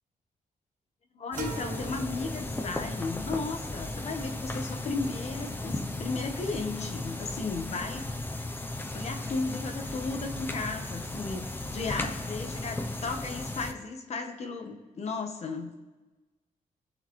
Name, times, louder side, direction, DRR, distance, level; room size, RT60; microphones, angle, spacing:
voice 1, 1.1-8.2 8.9-11.4 11.7-15.7, left 3 dB, 45° left, 5 dB, 1.3 m, -35 dB
sound 1, 1.3-13.7, left 2 dB, 15° left, 0.7 m, -36 dB
sound 2, 1.4-3.1, right 6 dB, 60° right, 1.2 m, -43 dB
21.5 x 7.9 x 3.2 m, 1.2 s
wide cardioid pair, 165°, 15 cm